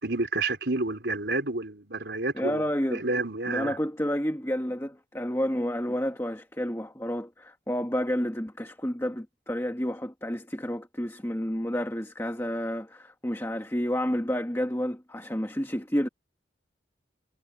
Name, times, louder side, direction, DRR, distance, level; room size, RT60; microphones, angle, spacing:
voice 1, 0.0-3.8, right 2 dB, 65° right, 4.5 m, -30 dB
voice 2, 2.3-3.0 3.5-16.1, equal, 15° left, 1.7 m, -30 dB
head